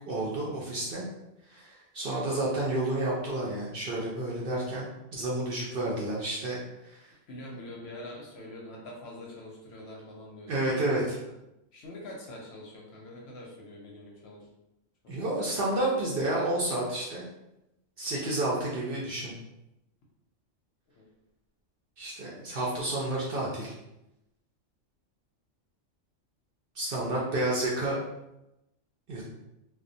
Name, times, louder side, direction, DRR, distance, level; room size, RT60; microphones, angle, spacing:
voice 1, 0.1-1.0 1.5-6.6 6.9-7.0 10.5-11.2 15.1-17.2 18.0-19.3 22.0-23.7 26.8-28.0 29.1-29.2, right 1 dB, 60° right, -5 dB, 0.6 m, -30 dB
voice 2, 7.3-10.6 11.2-11.3 11.7-14.5 15.0-15.2 21.0-21.1, left 1 dB, 65° left, -2 dB, 0.7 m, -44 dB
2.3 x 2.1 x 2.6 m, 0.91 s
omnidirectional pair, 1.3 m